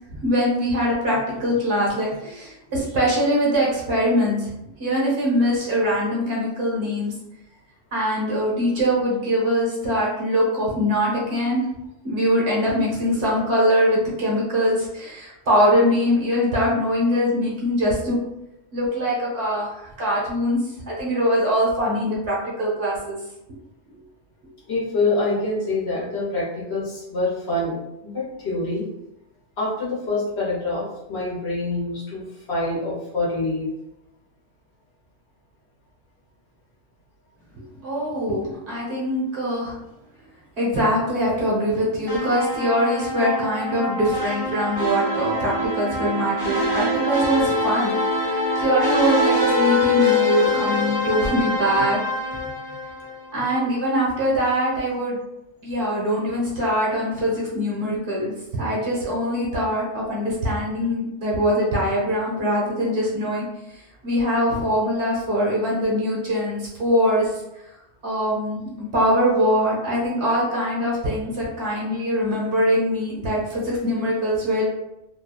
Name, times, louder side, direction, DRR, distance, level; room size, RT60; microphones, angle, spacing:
voice 1, 0.1-4.5 4.8-7.1 7.9-11.6 12.0-18.2 18.7-23.2 37.6-39.8 40.6-48.0 48.2-52.0 52.3-52.4 53.3-55.2 55.6-67.4 68.0-74.6, equal, 60° right, -5 dB, 1.1 m, -23 dB
voice 2, 24.7-28.9 29.6-33.7 51.2-51.3, left 2 dB, 55° left, -6 dB, 1.1 m, -26 dB
sound 1, 42.1-53.3, left 2 dB, 20° right, 0.6 m, -24 dB
2.8 x 2.2 x 2.3 m, 0.87 s
omnidirectional pair, 1.4 m